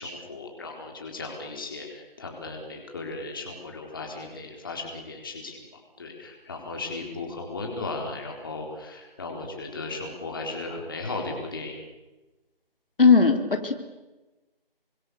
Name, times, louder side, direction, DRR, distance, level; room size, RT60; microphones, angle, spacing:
voice 1, 0.0-5.6 6.0-11.8, left 3 dB, 20° left, 1 dB, 4.2 m, -36 dB
voice 2, 13.0-13.7, left 4 dB, 65° left, 6 dB, 3.7 m, -18 dB
28.0 x 26.0 x 7.0 m, 1.1 s
figure-of-eight pair, 175°, 30 cm